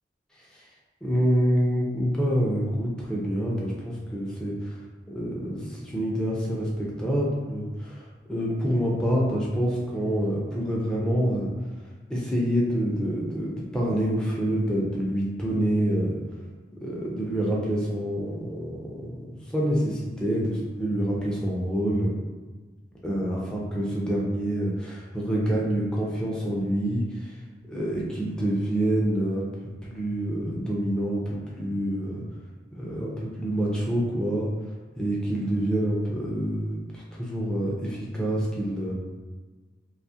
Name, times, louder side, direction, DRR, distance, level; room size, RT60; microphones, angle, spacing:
voice 1, 1.0-4.7 5.1-11.5 12.1-16.2 16.8-22.1 23.0-27.3 27.7-29.4 29.8-32.2 32.8-34.5 35.0-38.9, equal, 5° left, -5 dB, 0.4 m, -27 dB
2.4 x 2.4 x 2.7 m, 1.3 s
head